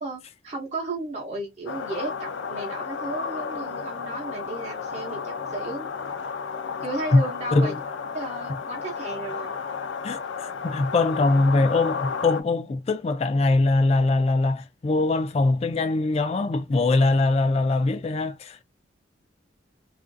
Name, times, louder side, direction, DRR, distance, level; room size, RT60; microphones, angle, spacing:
voice 1, 0.0-5.9 6.8-7.7 8.1-9.5, right 2 dB, 40° right, 0.7 m, -34 dB
sound 1, 1.7-12.4, left 5 dB, 85° left, 0.5 m, -33 dB
voice 2, 10.0-18.6, left 2 dB, 35° left, 0.3 m, -22 dB
3.0 x 2.4 x 2.6 m
head